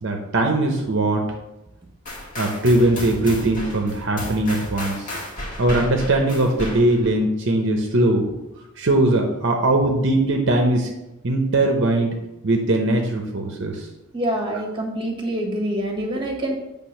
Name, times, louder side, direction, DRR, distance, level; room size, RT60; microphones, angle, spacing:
voice 1, 0.0-1.2 2.4-5.1 5.6-8.3 8.8-10.9 11.2-12.2 12.4-13.9, right 2 dB, 55° right, 2 dB, 0.8 m, -20 dB
sound 1, 2.1-7.2, left 1 dB, 35° left, 1.7 m, -33 dB
voice 2, 14.1-16.6, right 1 dB, 20° right, 0 dB, 1.3 m, -26 dB
8.2 x 3.5 x 5.8 m, 0.94 s
head